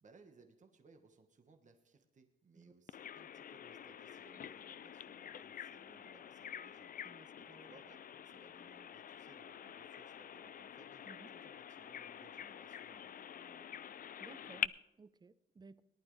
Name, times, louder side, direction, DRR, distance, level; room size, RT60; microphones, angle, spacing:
voice 1, 0.0-6.9 7.4-13.9, right 4 dB, 45° right, 5 dB, 1.3 m, -65 dB
Bird vocalization bird call bird song, 2.9-14.7, left 9 dB, 55° left, 0.4 m, -47 dB
voice 2, 7.0-7.7 11.0-11.4 14.2-15.8, right 4 dB, 25° right, 15 dB, 0.6 m, -58 dB
19.0 x 11.5 x 3.3 m, 0.98 s
wide cardioid pair, 155°, 18 cm